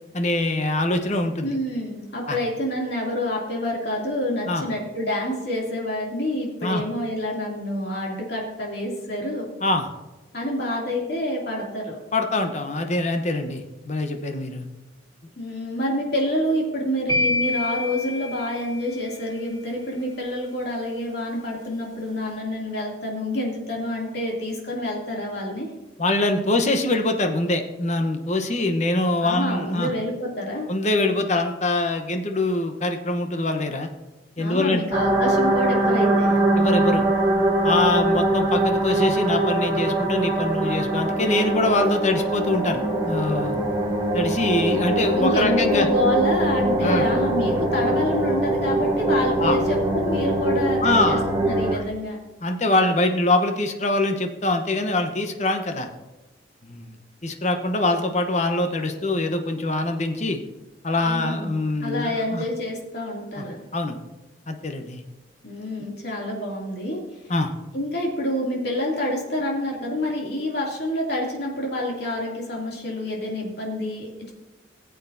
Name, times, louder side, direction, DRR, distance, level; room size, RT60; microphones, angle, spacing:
voice 1, 0.1-1.5 2.3-2.4 4.5-4.7 6.6-6.8 9.6-9.9 12.1-14.7 26.0-29.9 30.7-33.9 34.4-34.8 36.6-37.0 37.6-43.6 44.1-45.9 46.8-47.0 49.4-49.6 50.8-51.3 51.7-51.8 52.4-55.9 56.6-60.4 60.8-62.5 63.4-63.5 63.7-64.0 64.5-65.0 67.3-67.5, left 2 dB, 35° left, 6 dB, 0.9 m, -24 dB
voice 2, 1.4-9.5 10.3-12.0 15.4-25.7 29.2-30.7 34.4-36.4 44.7-44.8 45.1-52.2 61.0-61.5 61.8-63.6 65.4-67.0 67.7-74.3, left 1 dB, 55° left, -2 dB, 2.6 m, -27 dB
sound 1, 17.1-19.2, left 2 dB, 20° left, 3.1 m, -27 dB
sound 2, 34.9-51.7, right 1 dB, 20° right, 0.9 m, -22 dB
19.0 x 8.0 x 2.7 m, 1.1 s
head